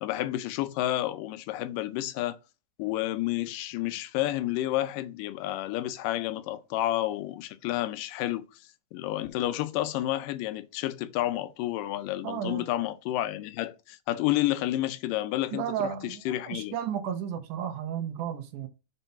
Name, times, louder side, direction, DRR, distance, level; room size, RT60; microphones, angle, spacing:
voice 1, 0.0-2.4 2.8-8.5 8.9-16.8, left 14 dB, 85° left, 2.3 m, -30 dB
voice 2, 12.2-12.7 15.5-18.7, right 9 dB, 75° right, 2.4 m, -33 dB
5.4 x 4.5 x 5.6 m
omnidirectional pair, 3.7 m